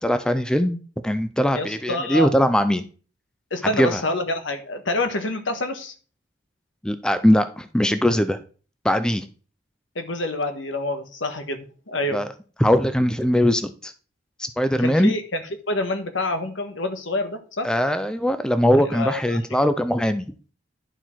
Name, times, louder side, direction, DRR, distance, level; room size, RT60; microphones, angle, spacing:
voice 1, 0.0-2.8 3.6-4.0 6.8-8.4 8.8-9.3 12.1-12.3 12.6-13.9 14.4-15.1 17.6-20.3, equal, 5° left, 10 dB, 0.4 m, -21 dB
voice 2, 1.5-2.3 3.5-5.9 9.9-12.2 14.8-17.7 18.9-19.4, left 1 dB, 75° left, 7 dB, 1.4 m, -27 dB
11.0 x 4.3 x 4.5 m, 0.39 s
head